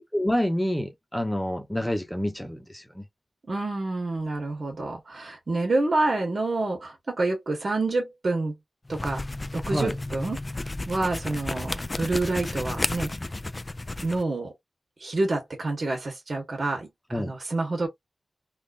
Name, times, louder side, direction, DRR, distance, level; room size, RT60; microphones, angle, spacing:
voice 1, 0.1-3.0 9.7-9.9 17.1-17.4, equal, 10° left, 1.0 m, -27 dB
voice 2, 3.5-8.5 8.9-9.2 9.5-10.4 10.9-13.1 14.0-14.5 15.0-17.9, right 2 dB, 65° right, 1.4 m, -28 dB
sound 1, 8.9-14.2, left 2 dB, 30° left, 0.4 m, -32 dB
3.7 x 2.4 x 2.5 m
wide cardioid pair, 65°, 0 cm